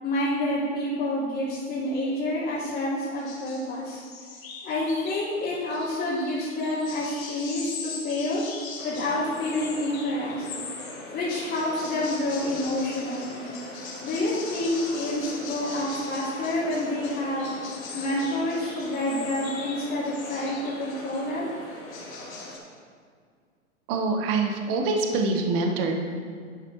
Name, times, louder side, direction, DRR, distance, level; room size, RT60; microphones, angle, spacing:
voice 1, 0.0-4.0 4.6-8.4 8.8-10.5 11.1-13.4 14.0-17.5 17.9-21.5, left 1 dB, 25° left, -10 dB, 2.8 m, -28 dB
sound 1, 3.2-3.7 4.0-5.3 5.7-11.1 11.5-21.3 21.7-22.6, left 4 dB, 70° left, 2.5 m, -41 dB
sound 2, 8.8-22.6, left 2 dB, 90° left, 2.2 m, -42 dB
voice 2, 23.9-25.9, right 3 dB, 40° right, 3 dB, 1.3 m, -25 dB
11.0 x 9.7 x 3.1 m, 2.1 s
hypercardioid pair, 120°, 42 cm